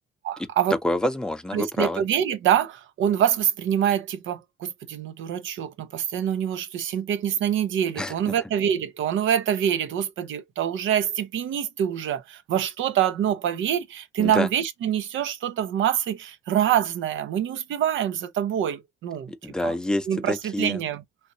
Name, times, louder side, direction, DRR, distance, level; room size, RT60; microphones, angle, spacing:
voice 1, 0.2-0.8 1.5-19.3 19.6-19.8 20.1-21.0, right 9 dB, 75° right, 0.6 m, -25 dB
voice 2, 0.8-2.0 8.0-8.4 14.2-14.5 19.3-20.8, left 1 dB, 5° left, 0.5 m, -27 dB
3.2 x 2.9 x 2.6 m
cardioid pair, 90°, 20 cm